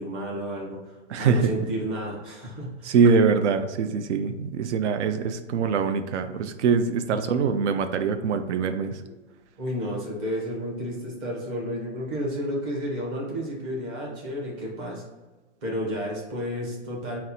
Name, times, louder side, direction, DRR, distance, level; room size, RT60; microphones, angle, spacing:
voice 1, 0.0-2.9 7.1-7.2 9.0-9.1 9.6-15.0 15.6-17.2, equal, 20° right, -3 dB, 0.6 m, -31 dB
voice 2, 1.1-1.5 2.8-9.0, right 5 dB, 70° right, 9 dB, 0.5 m, -23 dB
4.1 x 2.1 x 4.1 m, 1.2 s
hypercardioid pair, 160°, 36 cm